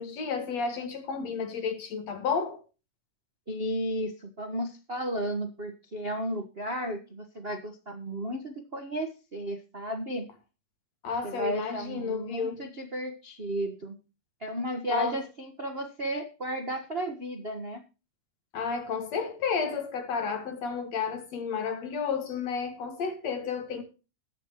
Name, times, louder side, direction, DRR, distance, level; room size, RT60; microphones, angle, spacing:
voice 1, 0.0-2.6 11.0-12.7 14.9-15.2 18.5-23.8, left 5 dB, 55° left, 3.0 m, -31 dB
voice 2, 3.5-10.3 11.2-14.0 14.4-17.8, right 1 dB, 75° right, 0.5 m, -34 dB
21.0 x 8.2 x 3.0 m
omnidirectional pair, 3.7 m